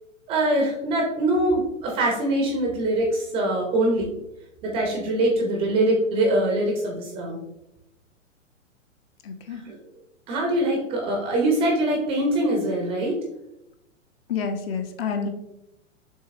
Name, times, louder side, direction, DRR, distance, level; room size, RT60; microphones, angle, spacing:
voice 1, 0.3-4.1 4.6-7.4 9.5-9.8 10.3-13.2, right 1 dB, 15° right, 0 dB, 0.4 m, -23 dB
voice 2, 9.2-9.6 14.3-15.3, left 6 dB, 45° left, 6 dB, 0.7 m, -28 dB
6.4 x 3.2 x 2.4 m, 0.88 s
hypercardioid pair, 120°, 40 cm